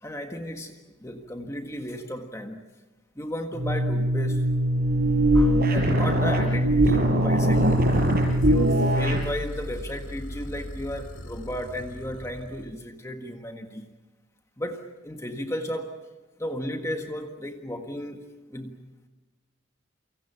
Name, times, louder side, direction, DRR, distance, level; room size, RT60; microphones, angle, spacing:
voice 1, 0.0-2.6 3.1-4.5 5.3-7.9 8.3-13.9 14.6-16.0 16.4-18.2 18.5-18.8, equal, 15° left, 4 dB, 1.6 m, -34 dB
sound 1, 3.5-9.3, right 1 dB, 50° right, 6.1 m, -21 dB
sound 2, 7.5-12.7, equal, 90° left, 2.3 m, -38 dB
29.0 x 25.0 x 5.9 m, 1.2 s
head